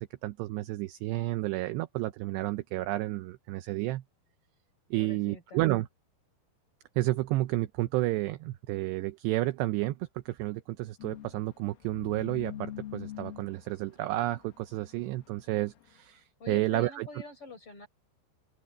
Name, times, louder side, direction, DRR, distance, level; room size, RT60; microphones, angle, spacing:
voice 1, 0.0-4.0 4.9-5.9 7.0-17.1, right 18 dB, 85° right, 2.4 m, -31 dB
voice 2, 4.9-5.6 16.4-17.9, left 4 dB, 25° left, 7.2 m, -45 dB
sound 1, 11.0-15.9, left 10 dB, 90° left, 5.1 m, -44 dB
open air
omnidirectional pair, 5.7 m